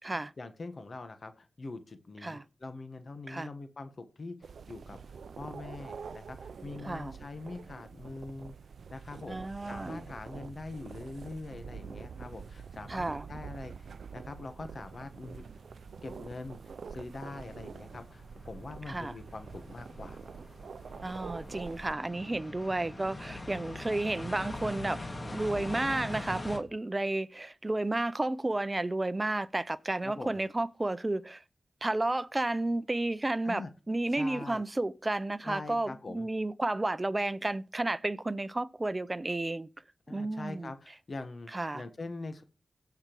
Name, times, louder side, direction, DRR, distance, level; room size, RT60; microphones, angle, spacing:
voice 1, 0.0-8.5 8.9-15.5 16.0-20.2 30.0-30.4 33.4-33.7 34.2-34.6 35.4-36.3 40.1-42.4, left 3 dB, 60° left, 1.1 m, -43 dB
sound 1, 4.4-21.9, right 6 dB, 85° right, 0.4 m, -46 dB
voice 2, 9.3-10.0 12.9-13.3 18.9-19.1 21.0-25.0 25.3-31.4 31.8-39.7 40.1-40.7 41.5-41.8, right 2 dB, 30° right, 0.5 m, -32 dB
sound 2, 12.5-12.6 13.3-13.4 13.9-14.5 15.0-26.6, left 2 dB, 40° left, 2.0 m, -43 dB
17.0 x 5.9 x 3.0 m
cardioid pair, 50°, 0 cm